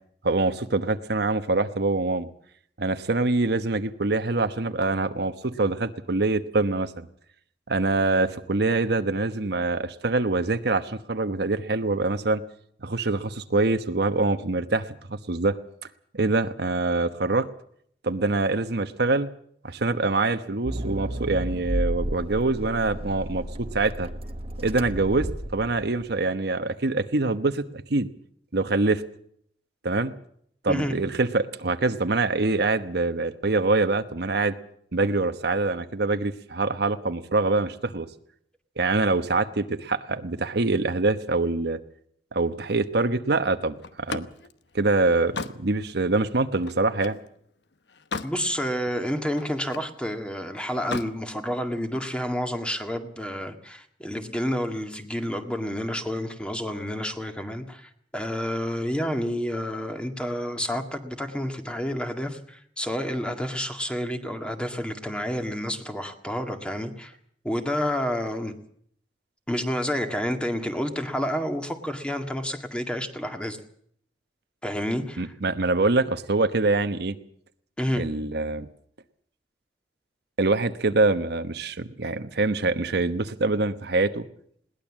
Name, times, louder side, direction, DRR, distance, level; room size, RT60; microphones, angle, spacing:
voice 1, 0.2-2.3 2.8-7.1 7.7-12.4 12.8-14.8 15.1-15.6 16.1-17.5 18.0-19.3 19.6-24.1 24.6-28.1 28.5-29.0 29.8-30.1 30.6-34.5 34.9-38.1 38.8-41.8 42.3-44.3 44.7-47.2 75.2-77.1 78.0-78.7 80.4-84.2, right 3 dB, 65° right, 9 dB, 1.1 m, -24 dB
Accelerating revving vroom, 20.6-26.1, right 1 dB, 35° right, 1.1 m, -32 dB
Slam, 43.8-47.3 47.7-48.4 48.8-50.0 50.7-51.2, left 4 dB, 75° left, 1.1 m, -36 dB
voice 2, 48.2-67.1 67.4-68.5 69.5-73.6 74.6-75.3 77.8-78.1, equal, 5° left, 6 dB, 1.9 m, -29 dB
21.0 x 18.5 x 7.4 m, 0.65 s
head